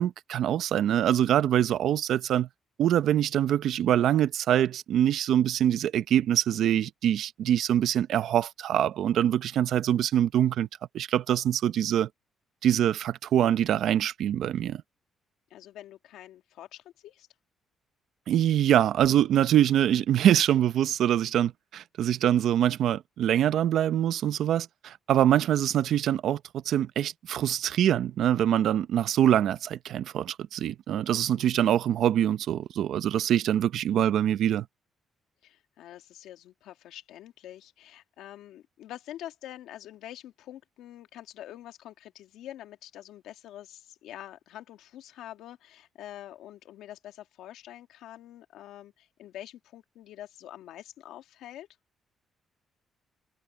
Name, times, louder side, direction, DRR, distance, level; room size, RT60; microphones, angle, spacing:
voice 1, 0.0-2.5 2.8-10.7 10.9-12.1 12.6-14.8 18.3-34.7, right 11 dB, 75° right, 0.9 m, -24 dB
voice 2, 15.5-17.3 31.4-31.7 35.4-51.7, left 12 dB, 85° left, 2.4 m, -46 dB
cardioid pair, 90°, 0 cm